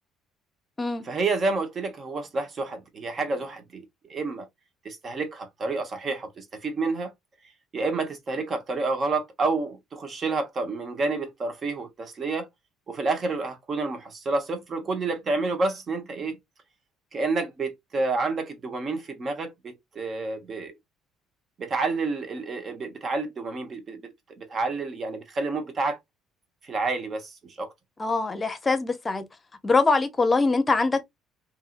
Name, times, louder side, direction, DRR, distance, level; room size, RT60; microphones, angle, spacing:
voice 1, 1.0-3.8 4.1-4.5 4.8-7.1 7.7-12.5 12.9-16.4 17.1-20.7 21.6-24.1 24.4-26.0 26.6-27.7, right 3 dB, 45° right, 1.0 m, -29 dB
voice 2, 28.0-29.2 29.6-31.0, left 3 dB, 25° left, 0.7 m, -23 dB
2.7 x 2.7 x 2.5 m
supercardioid pair, 70°, 0 cm